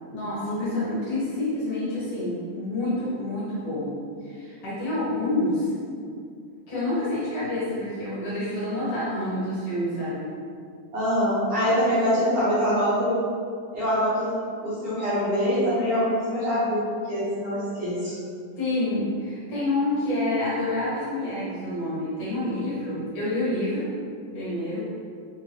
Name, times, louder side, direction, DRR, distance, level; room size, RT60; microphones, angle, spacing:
voice 1, 0.1-5.7 6.7-10.4 18.6-23.9 24.3-24.9, left 1 dB, 55° left, -10 dB, 2.4 m, -28 dB
voice 2, 10.9-13.1 13.7-14.3 14.6-16.8 17.1-18.1, equal, 60° right, -14 dB, 1.6 m, -24 dB
5.3 x 2.5 x 3.0 m, 2.3 s
omnidirectional pair, 3.9 m